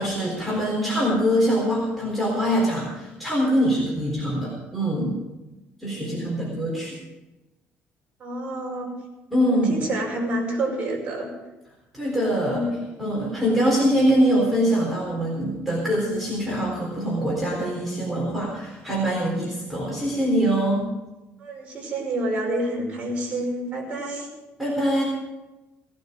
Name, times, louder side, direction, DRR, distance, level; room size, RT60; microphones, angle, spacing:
voice 1, 0.0-5.1 5.8-6.9 9.3-9.8 11.9-12.6 13.0-20.9 24.6-25.0, equal, ahead, -6 dB, 3.9 m, -23 dB
voice 2, 5.8-6.3 8.2-9.0 9.6-11.3 12.4-12.9 21.4-24.3, right 1 dB, 25° right, -3 dB, 5.5 m, -29 dB
18.5 x 12.0 x 5.2 m, 1.1 s
cardioid pair, 170°, 4 cm